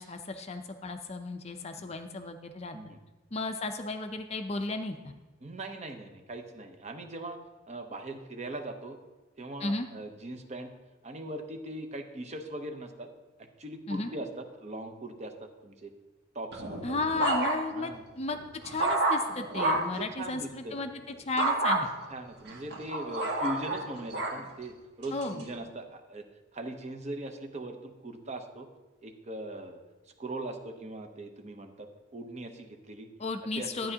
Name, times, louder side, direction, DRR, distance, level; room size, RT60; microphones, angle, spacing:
voice 1, 0.0-2.8 3.3-5.1 9.6-9.9 13.9-14.1 16.8-20.9 21.2-21.9 25.1-25.4 33.2-33.9, left 3 dB, 30° left, 7 dB, 0.5 m, -34 dB
voice 2, 5.4-7.4 7.7-9.0 9.4-10.7 11.0-13.1 13.6-15.9 16.3-17.3 17.7-18.0 19.7-21.2 22.1-26.3 26.5-28.7 29.0-29.8 30.2-33.1 33.4-33.9, right 1 dB, 30° right, 6 dB, 0.7 m, -40 dB
sound 1, 16.5-17.9 18.3-20.0 21.4-21.8 22.5-24.4 25.0-25.4, right 2 dB, 55° right, 1.2 m, -29 dB
12.0 x 8.8 x 2.8 m, 1.2 s
head